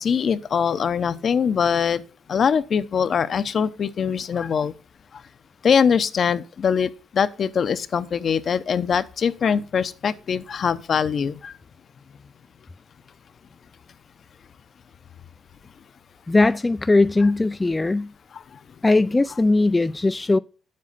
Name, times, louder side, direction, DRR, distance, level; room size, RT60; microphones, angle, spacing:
voice 1, 0.0-2.0 2.3-4.7 5.6-11.5, left 7 dB, 50° left, 0.7 m, -22 dB
voice 2, 16.3-18.1 18.8-20.4, left 2 dB, 20° left, 0.3 m, -19 dB
9.6 x 7.6 x 4.1 m
cardioid pair, 90°, 0 cm